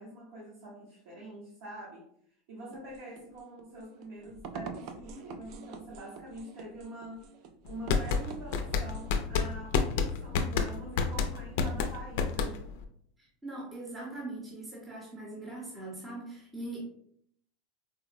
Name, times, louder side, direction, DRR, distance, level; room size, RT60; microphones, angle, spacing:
voice 1, 0.0-2.0 2.5-7.3 7.6-12.7, right 1 dB, 70° right, -7 dB, 1.0 m, -45 dB
sound 1, 2.7-9.4, right 5 dB, 50° right, 0.3 m, -46 dB
sound 2, 7.7-12.8, left 5 dB, 65° left, 0.4 m, -29 dB
voice 2, 13.4-16.8, right 2 dB, 15° right, -3 dB, 0.7 m, -41 dB
3.8 x 2.0 x 2.5 m, 0.66 s
supercardioid pair, 150°, 0 cm